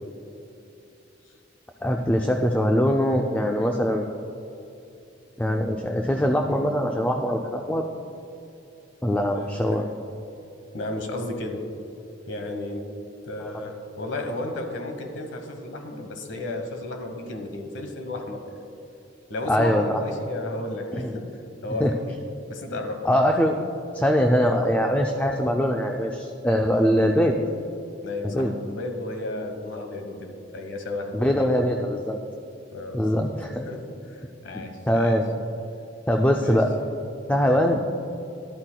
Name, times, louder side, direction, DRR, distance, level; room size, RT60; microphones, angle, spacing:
voice 1, 1.8-4.1 5.4-7.8 9.0-9.8 19.5-20.0 21.0-21.1 21.8-21.9 23.0-23.6 23.9-27.4 28.2-28.5 31.1-32.2 32.9-33.6 34.5-35.3 36.1-36.7 37.3-37.8, equal, 10° left, 2 dB, 0.4 m, -22 dB
voice 2, 3.6-3.9 9.2-9.9 10.7-11.6 12.3-12.9 13.2-18.6 19.3-21.3 21.6-22.2 22.5-23.1 26.7-26.9 28.0-31.5 32.7-33.2 33.7-35.2 36.4-36.6 37.3-37.5, left 2 dB, 75° left, 4 dB, 1.2 m, -34 dB
13.0 x 11.5 x 2.3 m, 2.8 s
head